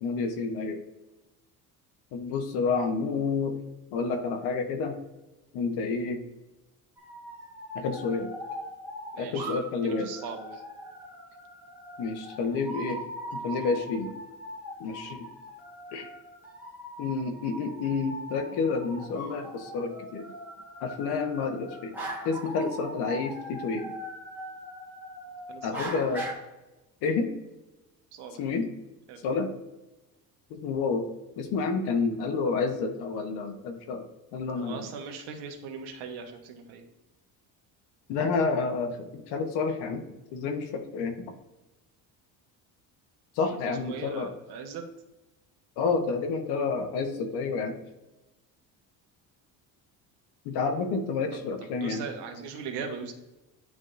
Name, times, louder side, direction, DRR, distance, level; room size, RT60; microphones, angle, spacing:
voice 1, 0.0-0.8 2.1-3.6 3.9-5.0 5.5-6.2 7.7-8.3 9.2-10.1 12.0-13.0 13.3-14.1 14.8-15.2 15.9-16.1 17.0-20.3 20.8-21.9 22.2-23.9 25.6-26.2 27.0-27.3 28.4-28.7 29.2-29.5 30.5-31.1 31.4-34.1 34.3-34.9 38.1-40.0 40.3-41.3 43.4-44.3 45.8-47.8 50.4-52.0, left 4 dB, 90° left, 5 dB, 1.0 m, -29 dB
sound 1, 7.0-26.3, right 1 dB, 5° right, 1.4 m, -41 dB
voice 2, 9.1-9.5 9.8-10.6 13.4-13.7 25.5-25.8 28.1-28.4 29.1-29.3 34.6-36.9 43.7-44.8 51.3-53.1, right 6 dB, 85° right, 4 dB, 1.2 m, -40 dB
10.5 x 3.6 x 2.5 m, 1.0 s
cardioid pair, 170°, 38 cm